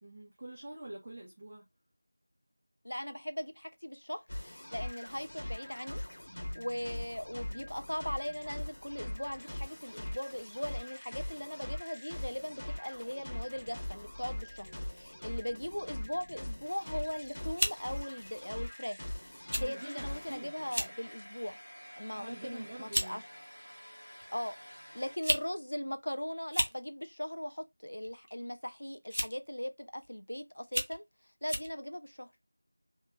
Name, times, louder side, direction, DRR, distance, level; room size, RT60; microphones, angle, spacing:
voice 1, 0.0-1.6 19.6-20.9 22.1-23.2, right 2 dB, 20° right, 1.0 m, -46 dB
voice 2, 2.8-21.6 22.0-23.2 24.3-24.6 24.9-32.3, equal, 65° left, 0.7 m, -39 dB
sound 1, 4.3-20.4, left 1 dB, 40° left, 1.4 m, -42 dB
sound 2, 16.9-17.1 17.6-17.8 18.6-18.8 19.5-19.7 20.0-20.1 20.6-21.0 21.5-21.7 22.5-22.6 22.9-23.1 24.2-24.3 25.0-25.5 25.7-25.8 26.4-26.8 28.0-28.3 29.1-29.5 30.0-30.1 30.6-31.0 31.5-31.7, equal, 65° right, 1.0 m, -33 dB
sound 3, 19.7-25.2, equal, 80° left, 1.4 m, -51 dB
3.6 x 3.3 x 3.0 m
figure-of-eight pair, 175°, 0 cm